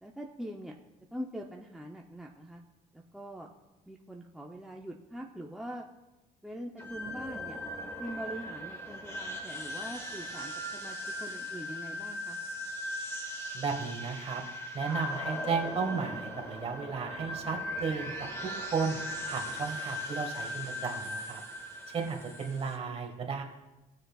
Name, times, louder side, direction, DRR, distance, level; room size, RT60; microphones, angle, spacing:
voice 1, 0.0-0.8 1.1-2.6 2.9-3.5 3.9-5.9 6.4-7.6 8.0-12.4 19.4-19.6, equal, ahead, -1 dB, 0.7 m, -43 dB
sound 1, 6.8-22.8, left 1 dB, 15° left, 1.4 m, -39 dB
voice 2, 13.5-14.4 14.7-19.0 19.3-21.4 21.9-23.4, right 5 dB, 35° right, 1 dB, 1.8 m, -34 dB
18.5 x 6.4 x 2.4 m, 1.0 s
cardioid pair, 110°, 17 cm